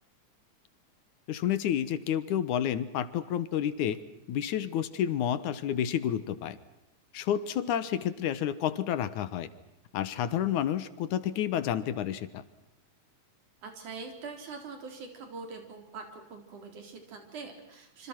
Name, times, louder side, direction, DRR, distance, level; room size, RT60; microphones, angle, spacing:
voice 1, 1.3-4.0 4.3-6.6 7.1-9.5 9.9-12.4, left 10 dB, 80° left, 14 dB, 2.7 m, -30 dB
voice 2, 13.6-18.1, right 4 dB, 85° right, 5 dB, 5.4 m, -43 dB
27.0 x 26.0 x 6.0 m, 0.88 s
omnidirectional pair, 3.4 m